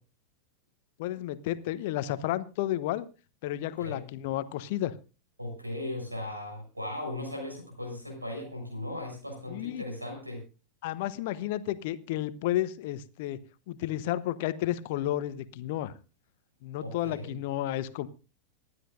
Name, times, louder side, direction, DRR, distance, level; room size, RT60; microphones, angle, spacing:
voice 1, 1.0-3.1 3.4-4.9 9.5-9.8 10.8-13.4 13.7-15.9 16.6-18.1, left 13 dB, 50° left, 15 dB, 1.0 m, -32 dB
voice 2, 5.4-10.4 16.8-17.3, left 1 dB, 85° right, 3 dB, 6.8 m, -37 dB
25.5 x 11.0 x 2.6 m, 0.33 s
figure-of-eight pair, 90°, 0 cm